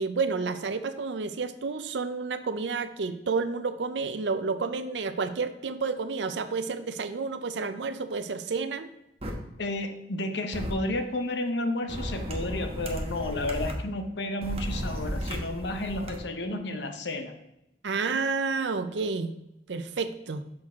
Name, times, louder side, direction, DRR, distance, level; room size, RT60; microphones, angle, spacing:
voice 1, 0.0-8.9 17.8-19.3 19.7-20.4, right 4 dB, 85° right, 11 dB, 0.6 m, -30 dB
sound 1, 9.2-9.3 10.5-10.7 11.9-13.7 14.4-16.2, equal, 35° right, 1.1 m, -34 dB
voice 2, 9.6-17.3, left 1 dB, 75° left, 7 dB, 0.8 m, -31 dB
6.3 x 6.2 x 3.6 m, 0.87 s
head